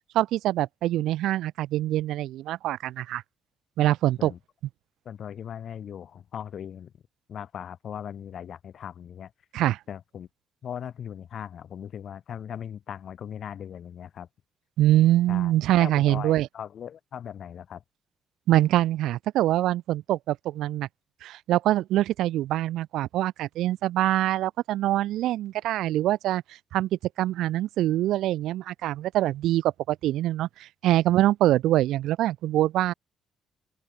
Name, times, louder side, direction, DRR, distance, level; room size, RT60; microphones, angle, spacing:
voice 1, 0.1-3.2 3.8-4.3 9.5-9.8 14.8-16.5 18.5-20.9 21.2-26.4 26.7-26.9 27.2-32.9, right 14 dB, 85° right, 2.0 m, -24 dB
voice 2, 5.0-6.9 7.3-9.3 9.9-10.3 10.6-14.3 15.3-15.5 15.8-17.8, left 9 dB, 60° left, 6.8 m, -39 dB
open air
cardioid pair, 90°, 0 cm